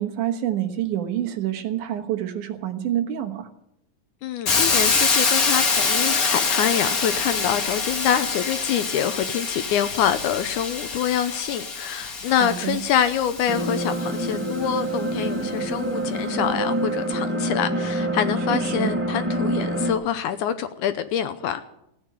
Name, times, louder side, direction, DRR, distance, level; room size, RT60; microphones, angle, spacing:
voice 1, 0.0-3.5 12.3-12.8 18.5-18.9, right 11 dB, 70° right, 2.5 m, -27 dB
voice 2, 4.2-21.6, left 9 dB, 75° left, 2.1 m, -25 dB
Hiss, 4.5-14.3, left 4 dB, 45° left, 1.2 m, -25 dB
sound 1, 13.5-19.9, right 1 dB, 10° right, 0.6 m, -26 dB
16.0 x 9.7 x 9.0 m
omnidirectional pair, 3.9 m